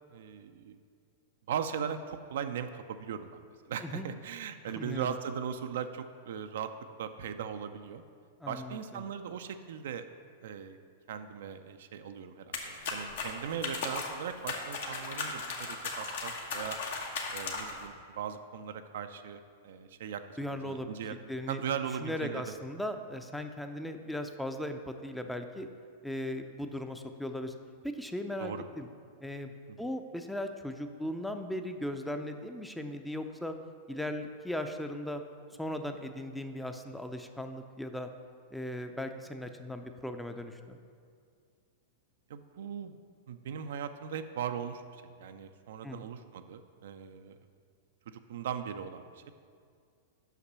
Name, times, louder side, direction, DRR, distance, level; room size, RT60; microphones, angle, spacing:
voice 1, 0.1-0.8 1.5-6.7 7.0-8.0 8.5-10.0 10.4-10.8 11.1-16.8 17.3-21.2 21.5-22.4 28.4-28.6 42.3-43.0 43.3-47.3 48.1-49.3, right 8 dB, 65° right, 9 dB, 0.4 m, -39 dB
voice 2, 4.8-5.2 8.4-9.1 20.4-20.9 21.3-21.6 22.0-25.7 26.0-27.5 27.8-28.9 29.2-29.5 29.8-33.5 33.9-35.2 35.6-38.1 38.5-40.8 45.8-46.0, left 1 dB, 5° left, 6 dB, 0.5 m, -38 dB
sound 1, 12.5-17.9, left 4 dB, 65° left, 1.0 m, -37 dB
5.8 x 5.7 x 5.5 m, 2.2 s
hypercardioid pair, 100°, 0 cm